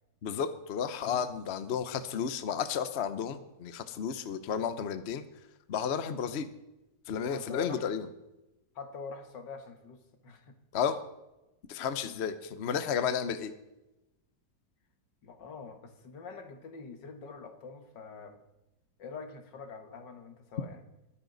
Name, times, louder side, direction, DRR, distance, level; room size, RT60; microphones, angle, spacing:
voice 1, 0.2-5.2 5.7-6.5 7.1-8.1 10.7-11.0 11.7-13.5, left 7 dB, 50° left, 11 dB, 0.9 m, -32 dB
voice 2, 7.3-7.9 8.8-10.6 12.0-12.2 15.2-18.4 19.0-20.8, left 5 dB, 75° left, 6 dB, 2.2 m, -45 dB
22.0 x 10.0 x 4.0 m, 0.97 s
omnidirectional pair, 1.9 m